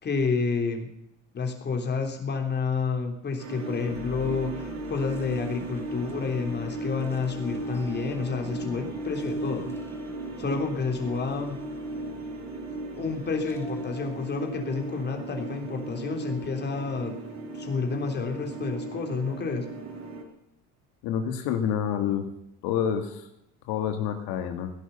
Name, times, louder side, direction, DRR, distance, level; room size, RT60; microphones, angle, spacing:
voice 1, 0.0-0.9 1.3-9.7 10.4-11.6 12.9-17.2 17.6-19.7, left 4 dB, 30° left, 4 dB, 3.3 m, -29 dB
sound 1, 3.4-20.2, right 2 dB, 45° right, 4.3 m, -36 dB
sound 2, 3.8-15.7, left 1 dB, 5° left, 2.3 m, -46 dB
voice 2, 21.0-22.3 22.6-23.3 23.7-24.7, left 8 dB, 80° left, 6 dB, 2.1 m, -28 dB
16.5 x 11.0 x 7.0 m, 0.79 s
cardioid pair, 120°, 36 cm